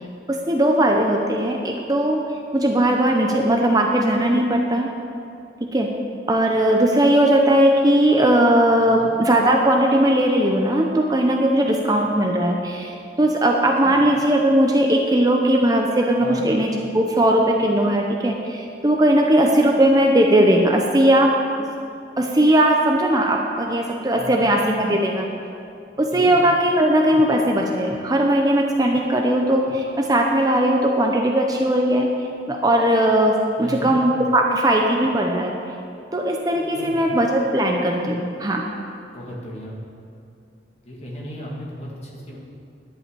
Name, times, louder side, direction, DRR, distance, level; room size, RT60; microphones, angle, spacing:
voice 1, 0.3-2.2 2.5-4.9 5.7-5.9 6.3-12.9 13.2-21.7 22.2-25.3 26.0-32.1 32.5-35.5 36.1-38.7, right 1 dB, 20° right, 1 dB, 0.6 m, -18 dB
voice 2, 8.8-9.1 13.8-14.0 16.2-16.5 24.1-24.4 26.1-26.3 33.6-33.9 36.7-37.0 39.1-39.8 40.8-42.4, equal, 35° left, -3 dB, 2.0 m, -35 dB
11.0 x 5.6 x 8.5 m, 2.6 s
head